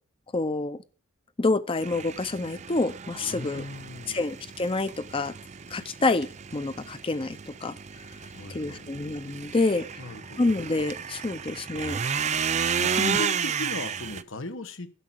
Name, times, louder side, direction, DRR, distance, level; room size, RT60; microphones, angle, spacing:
voice 1, 0.3-0.8 1.4-3.6 4.1-5.3 5.7-7.7 8.5-9.9 10.4-12.0 13.0-13.2, left 3 dB, 25° left, 14 dB, 0.5 m, -27 dB
sound 1, 1.8-14.2, right 7 dB, 30° right, 0.5 m, -33 dB
voice 2, 3.2-4.2 8.2-8.9 10.0-10.4 12.8-14.9, left 2 dB, 60° left, 9 dB, 1.3 m, -38 dB
12.5 x 5.7 x 7.7 m, 0.40 s
head